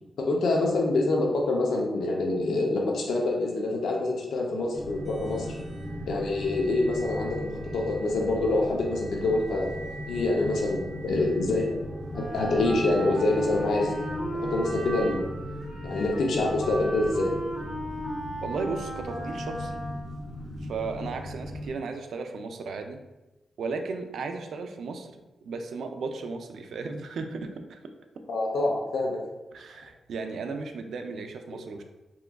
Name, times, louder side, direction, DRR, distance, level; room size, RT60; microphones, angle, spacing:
voice 1, 0.2-5.5 6.1-9.7 10.1-11.8 12.2-14.0 14.4-15.2 15.8-17.3 28.3-29.2, left 2 dB, 90° left, -1 dB, 0.5 m, -26 dB
sound 1, 4.7-21.7, left 1 dB, 10° right, 1.1 m, -38 dB
sound 2, 4.7-15.2, right 1 dB, 60° right, 0.8 m, -43 dB
Wind instrument woodwind instrument, 12.1-20.3, right 1 dB, 25° left, 1.0 m, -35 dB
voice 2, 18.4-19.8 20.6-23.0 23.6-27.8 29.5-31.8, right 4 dB, 75° right, 6 dB, 0.3 m, -35 dB
3.4 x 2.9 x 2.2 m, 1.1 s
wide cardioid pair, 180°, 0 cm